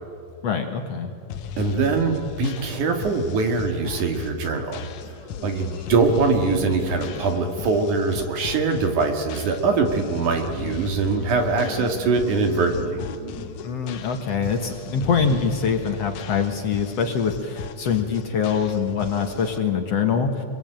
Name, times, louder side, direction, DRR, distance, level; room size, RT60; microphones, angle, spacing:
voice 1, 0.4-1.1 13.6-20.4, left 6 dB, 55° left, 4 dB, 2.3 m, -24 dB
sound 1, 1.3-19.6, left 8 dB, 70° left, 1.9 m, -38 dB
voice 2, 1.6-4.9 5.4-13.0, right 4 dB, 65° right, 4 dB, 3.4 m, -22 dB
sound 2, 5.2-8.2 9.7-10.8 11.6-13.7 15.0-15.3, left 4 dB, 30° left, 2.9 m, -37 dB
26.5 x 21.5 x 9.0 m, 2.3 s
omnidirectional pair, 3.9 m